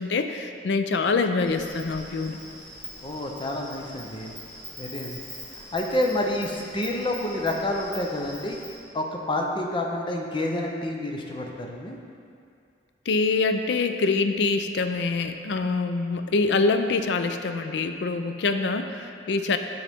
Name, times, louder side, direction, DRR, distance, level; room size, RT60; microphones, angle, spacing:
voice 1, 0.0-2.4 13.1-19.6, left 3 dB, 70° left, 7 dB, 0.4 m, -25 dB
Insect, 1.4-8.8, equal, 5° left, 1.3 m, -42 dB
voice 2, 3.0-4.3 4.8-5.2 5.5-8.6 8.9-12.0, left 1 dB, 30° left, 1 dB, 0.6 m, -28 dB
10.0 x 4.0 x 3.5 m, 2.3 s
head